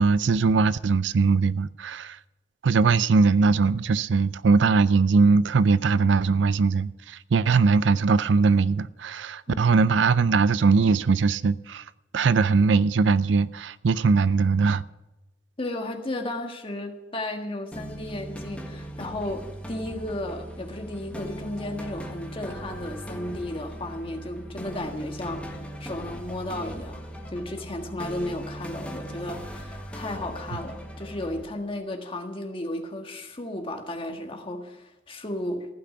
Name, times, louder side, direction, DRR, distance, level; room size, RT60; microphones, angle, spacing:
voice 1, 0.0-2.2 2.6-11.8 12.1-14.8, right 4 dB, 75° right, 0.4 m, -21 dB
voice 2, 15.6-35.7, left 1 dB, 30° left, 1.6 m, -34 dB
sound 1, 17.7-31.4, right 1 dB, 5° left, 1.5 m, -39 dB
15.5 x 5.9 x 9.9 m
head